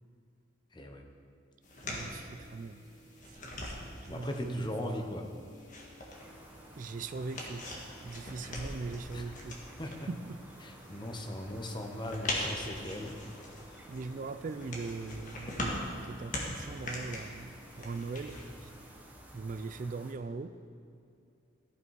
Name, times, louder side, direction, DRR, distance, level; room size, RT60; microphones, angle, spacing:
voice 1, 0.7-1.1 1.8-2.3 4.0-5.2 9.1-9.2 9.8-9.9 10.6-13.1, left 1 dB, 25° left, 3 dB, 0.8 m, -39 dB
sound 1, 1.6-18.9, left 1 dB, 45° left, 1.6 m, -42 dB
voice 2, 1.9-2.9 3.3-5.2 6.8-7.7 8.0-10.4 13.9-18.7 19.3-20.6, right 3 dB, 45° right, 11 dB, 0.3 m, -41 dB
sound 2, 6.1-20.1, right 1 dB, 10° right, 0.9 m, -53 dB
14.0 x 5.7 x 4.7 m, 2.6 s
head